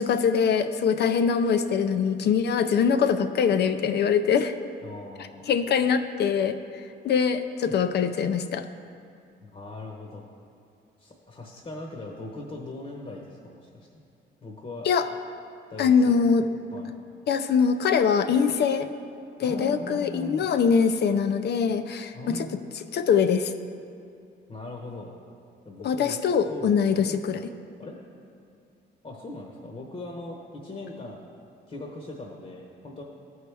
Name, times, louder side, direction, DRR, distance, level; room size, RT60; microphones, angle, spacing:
voice 1, 0.0-4.5 5.5-6.6 7.0-8.7 14.8-15.1 15.8-16.5 17.3-18.9 19.4-22.5 22.7-23.5 25.8-27.5, left 6 dB, 60° left, 9 dB, 0.5 m, -23 dB
voice 2, 4.8-5.4 7.7-7.8 9.4-10.3 11.0-13.9 14.4-14.9 15.7-16.2 16.7-16.9 19.4-20.5 22.1-22.6 24.5-25.1 25.6-26.2 26.5-27.2 27.8-27.9 29.0-31.2 31.7-33.0, left 2 dB, 35° left, 0 dB, 1.0 m, -39 dB
14.0 x 4.7 x 3.4 m, 2.5 s
cardioid pair, 90°, 20 cm